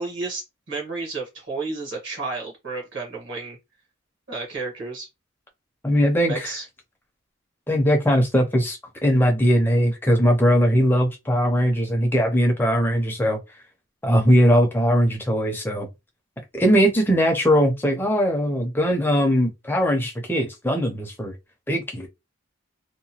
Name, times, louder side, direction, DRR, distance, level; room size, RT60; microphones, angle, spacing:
voice 1, 0.0-3.6 4.3-5.1 6.3-6.6, right 3 dB, 55° right, 1.1 m, -31 dB
voice 2, 5.8-6.5 7.7-13.4 14.0-15.9 16.5-21.3 21.7-22.1, equal, 10° left, 0.5 m, -20 dB
2.8 x 2.2 x 2.8 m
head